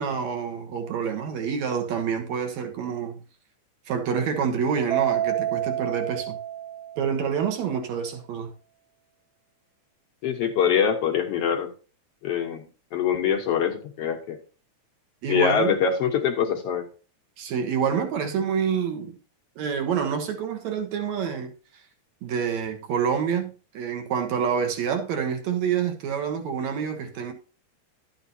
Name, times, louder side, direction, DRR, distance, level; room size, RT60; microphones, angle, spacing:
voice 1, 0.0-3.2 3.9-6.4 7.0-8.5 15.2-15.7 17.4-19.2 19.6-21.5 22.2-27.3, right 7 dB, 70° right, 2.5 m, -27 dB
Mallet percussion, 4.9-7.4, right 12 dB, 85° right, 1.3 m, -28 dB
voice 2, 10.2-11.7 12.2-12.7 12.9-14.4 15.3-16.9, left 7 dB, 70° left, 1.5 m, -24 dB
12.0 x 8.6 x 2.7 m
omnidirectional pair, 3.5 m